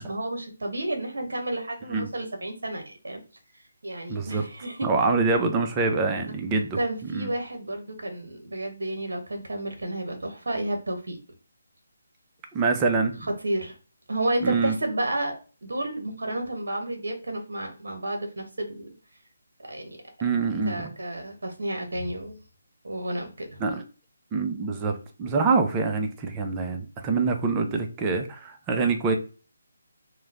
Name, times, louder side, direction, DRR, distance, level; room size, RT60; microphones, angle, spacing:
voice 1, 0.0-3.2 3.8-4.9 6.7-11.2 13.4-13.7 14.1-18.9 19.7-20.0 20.7-22.4 22.8-23.6, right 1 dB, 70° right, 4 dB, 0.8 m, -31 dB
voice 2, 4.1-4.4 4.8-7.3 12.5-13.3 14.4-14.7 20.2-20.9 23.6-23.8 24.3-24.9 25.2-29.2, right 4 dB, 20° right, 4 dB, 0.4 m, -25 dB
3.0 x 2.0 x 2.4 m, 0.35 s
figure-of-eight pair, 150°, 0 cm